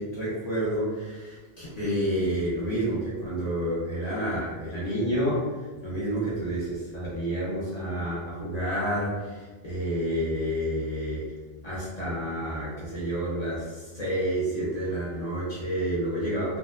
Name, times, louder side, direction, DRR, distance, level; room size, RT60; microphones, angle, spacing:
voice 1, 0.0-5.5 5.8-11.2 11.6-16.6, right 1 dB, 45° left, -8 dB, 0.6 m, -29 dB
2.8 x 2.2 x 2.2 m, 1.4 s
omnidirectional pair, 1.4 m